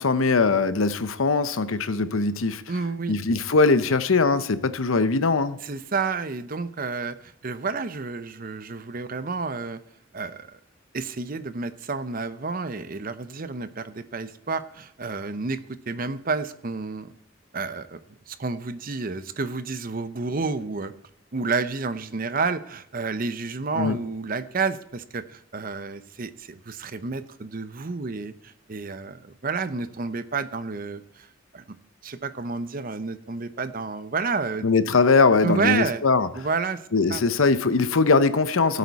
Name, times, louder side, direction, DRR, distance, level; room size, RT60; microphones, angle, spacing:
voice 1, 0.0-2.6 3.1-5.6 23.7-24.0 34.6-36.3 36.9-38.8, left 4 dB, 90° left, 13 dB, 0.8 m, -21 dB
voice 2, 2.7-3.2 5.6-9.8 10.1-10.6 10.9-15.6 15.9-17.1 17.5-18.0 18.3-20.9 21.3-31.3 31.5-31.6 32.0-34.7 35.4-36.0 36.3-36.8 37.1-37.2 38.7-38.8, right 4 dB, 45° right, 12 dB, 0.7 m, -30 dB
16.5 x 8.3 x 4.2 m, 0.70 s
head